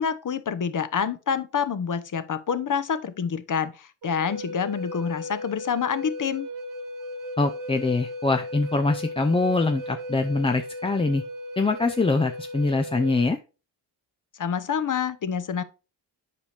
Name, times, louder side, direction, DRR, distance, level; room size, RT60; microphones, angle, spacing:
voice 1, 0.0-6.5 14.4-15.6, left 7 dB, 40° left, 0.8 m, -27 dB
Wind instrument woodwind instrument, 4.0-13.3, left 1 dB, 40° right, 0.8 m, -36 dB
voice 2, 7.4-11.2 11.6-13.4, left 3 dB, 10° left, 0.4 m, -24 dB
8.4 x 5.0 x 3.3 m
supercardioid pair, 55°, 50 cm